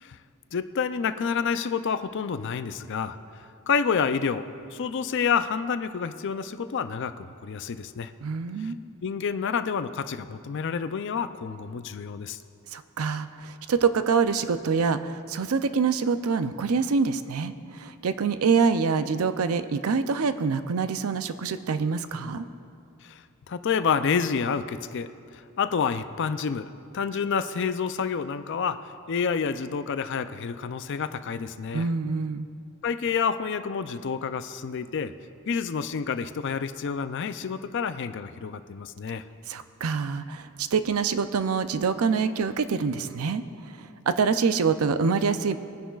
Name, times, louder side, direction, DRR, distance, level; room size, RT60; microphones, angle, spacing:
voice 1, 0.5-3.2 3.7-8.1 8.6-8.7 9.0-12.4 23.0-23.2 23.5-26.7 26.9-31.9 32.8-35.1 35.5-39.2, left 6 dB, 55° left, 11 dB, 0.4 m, -29 dB
voice 2, 8.2-8.8 12.7-22.5 31.7-32.5 39.5-43.4 43.7-45.6, right 5 dB, 85° right, 11 dB, 0.5 m, -25 dB
22.0 x 10.0 x 2.4 m, 2.6 s
head